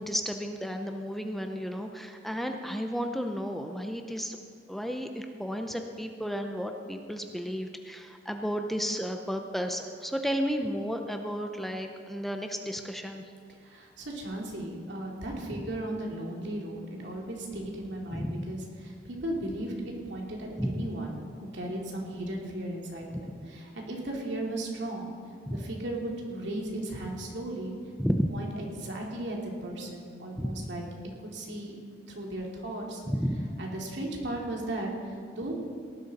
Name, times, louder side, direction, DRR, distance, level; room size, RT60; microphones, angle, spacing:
voice 1, 0.0-4.4 4.7-13.2 15.5-15.6 18.1-18.4 20.6-20.9 23.1-23.2 25.5-25.6 28.0-28.3 30.4-30.7 33.1-33.5, equal, ahead, 4 dB, 0.6 m, -32 dB
voice 2, 13.6-19.7 20.1-25.1 25.5-27.7 28.3-30.8 31.2-31.8 32.1-33.0 33.6-35.5, right 1 dB, 70° right, -1 dB, 2.7 m, -36 dB
18.0 x 12.0 x 4.2 m, 2.3 s
head